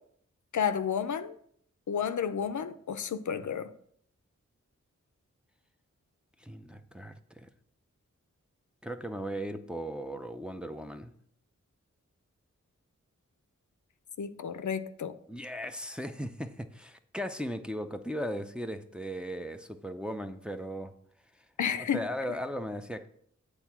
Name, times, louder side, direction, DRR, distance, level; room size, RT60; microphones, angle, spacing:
voice 1, 0.5-1.3 1.9-3.7 14.2-15.2 21.6-22.0, left 7 dB, 75° left, 0.5 m, -31 dB
voice 2, 6.4-7.5 8.8-11.1 15.3-20.9 21.9-23.1, equal, 5° right, 0.5 m, -37 dB
8.2 x 3.6 x 5.9 m
wide cardioid pair, 70°, 30 cm